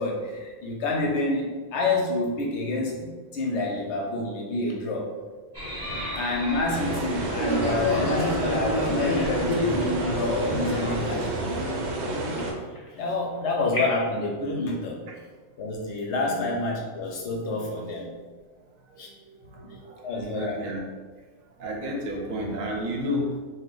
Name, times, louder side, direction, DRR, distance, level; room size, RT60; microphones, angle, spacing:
voice 1, 0.0-5.1 6.1-12.4 12.9-15.0 15.6-18.1 19.0-19.1 19.6-19.8 20.0-20.6, left 2 dB, 65° left, -1 dB, 0.8 m, -28 dB
sound 1, 5.5-11.3, equal, 30° right, 0.5 m, -29 dB
sound 2, 6.7-12.5, right 2 dB, 65° right, 0.7 m, -30 dB
sound 3, 8.9-14.2, left 1 dB, 35° left, 0.6 m, -41 dB
voice 2, 18.9-20.9 21.6-23.4, equal, 90° right, 0 dB, 1.0 m, -32 dB
2.7 x 2.1 x 3.7 m, 1.4 s
omnidirectional pair, 1.4 m